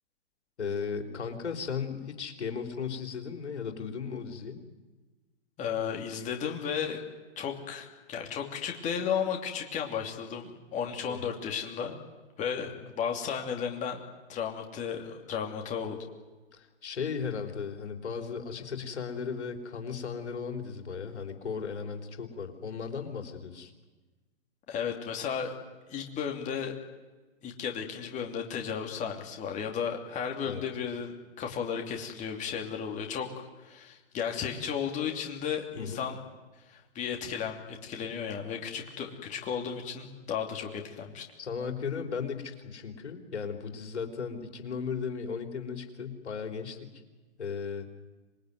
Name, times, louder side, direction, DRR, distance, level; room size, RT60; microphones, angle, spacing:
voice 1, 0.6-4.6 11.1-11.3 12.8-12.9 16.5-23.7 30.4-30.6 35.8-36.0 41.4-46.9 47.4-47.9, left 6 dB, 75° left, 5 dB, 3.9 m, -36 dB
voice 2, 5.6-7.0 7.4-12.0 12.4-14.0 14.3-16.0 24.7-25.6 25.9-26.7 27.4-36.2 36.7-41.2, left 7 dB, 20° left, 2 dB, 2.8 m, -34 dB
27.0 x 21.0 x 9.5 m, 1.2 s
hypercardioid pair, 135°, 34 cm